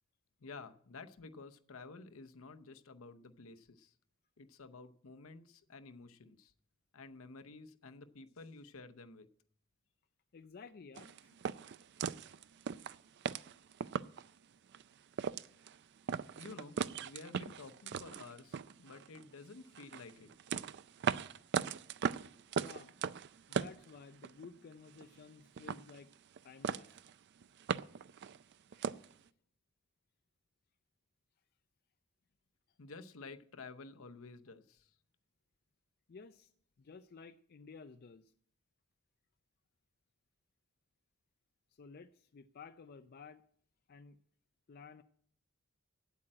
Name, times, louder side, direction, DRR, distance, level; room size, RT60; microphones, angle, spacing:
voice 1, 0.4-3.9 4.4-6.5 6.9-9.3 16.4-20.3 32.8-35.0, left 3 dB, 70° left, 10 dB, 0.7 m, -52 dB
voice 2, 10.3-11.4 22.6-22.9 23.5-26.1 26.4-26.9 28.7-28.8 36.1-36.5 36.8-38.3 41.7-43.4 43.9-44.2 44.7-45.0, left 5 dB, 45° left, 9 dB, 0.4 m, -54 dB
sound 1, 11.0-14.3 14.7-14.8 15.1-15.8 16.1-19.2 19.7-24.5 24.7-25.3 25.6-26.4 26.6-27.1 27.4-29.1, right 7 dB, 55° right, 0.4 m, -38 dB
8.8 x 8.3 x 8.7 m, 0.62 s
head